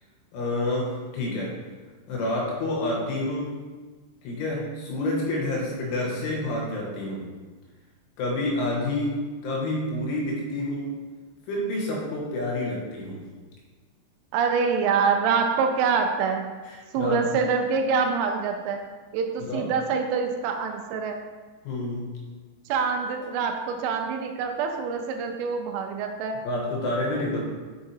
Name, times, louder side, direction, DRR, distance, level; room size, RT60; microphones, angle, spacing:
voice 1, 0.3-1.5 2.1-3.6 4.2-7.3 8.2-11.0 11.5-13.2 16.7-17.2 19.4-19.7 21.7-22.1 26.5-27.4, left 1 dB, 85° left, -3 dB, 3.8 m, -28 dB
voice 2, 14.3-16.5 16.9-18.9 19.1-21.2 22.7-26.4, right 5 dB, 90° right, 4 dB, 3.2 m, -25 dB
7.0 x 5.6 x 2.8 m, 1.3 s
omnidirectional pair, 5.4 m